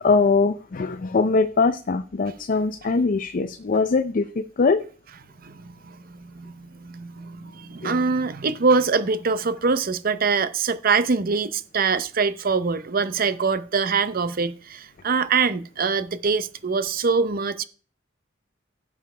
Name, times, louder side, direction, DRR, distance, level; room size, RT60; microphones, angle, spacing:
voice 1, 0.0-4.8 7.8-7.9, left 4 dB, 45° left, 0.5 m, -22 dB
voice 2, 5.4-17.6, right 4 dB, 50° right, 0.7 m, -24 dB
16.0 x 7.0 x 3.3 m
head